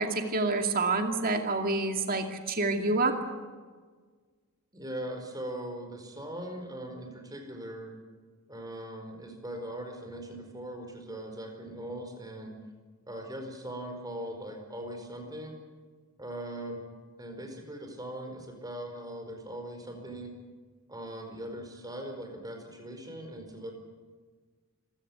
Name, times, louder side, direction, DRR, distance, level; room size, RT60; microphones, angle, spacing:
voice 1, 0.0-3.2, right 3 dB, 40° right, 4 dB, 2.5 m, -28 dB
voice 2, 4.7-8.0 8.5-12.6 13.1-15.6 16.2-16.9 17.2-20.4 20.9-23.7, right 1 dB, 20° right, 4 dB, 4.7 m, -40 dB
26.5 x 16.0 x 9.5 m, 1.5 s
head